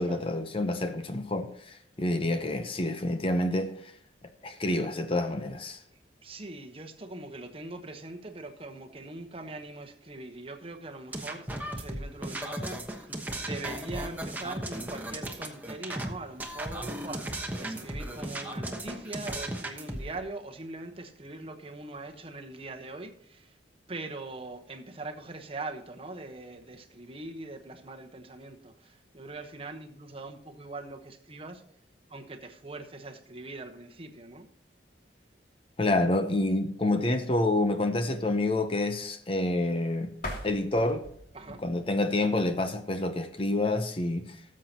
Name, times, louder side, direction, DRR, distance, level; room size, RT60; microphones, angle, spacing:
voice 1, 0.0-3.7 4.4-5.8 35.8-40.1 40.4-41.0 41.6-44.2, left 2 dB, 30° left, 0.7 m, -28 dB
voice 2, 5.9-23.6 23.9-31.6 32.1-34.5 41.3-41.6, right 2 dB, 30° right, 1.1 m, -42 dB
sound 1, 11.1-16.1 16.4-20.2, right 1 dB, 10° right, 1.1 m, -36 dB
sound 2, 40.1-43.0, left 1 dB, 50° left, 2.7 m, -43 dB
18.5 x 7.5 x 2.9 m
head